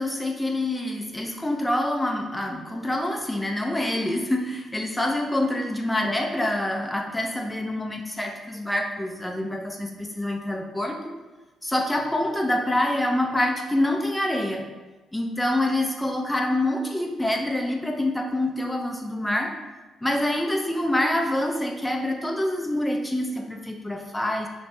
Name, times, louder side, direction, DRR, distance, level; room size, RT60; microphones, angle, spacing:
voice 1, 0.0-11.1 11.6-14.7 15.1-19.5 20.0-24.5, left 1 dB, 10° left, 2 dB, 0.4 m, -26 dB
5.1 x 2.0 x 2.6 m, 1.2 s
cardioid pair, 90°, 0 cm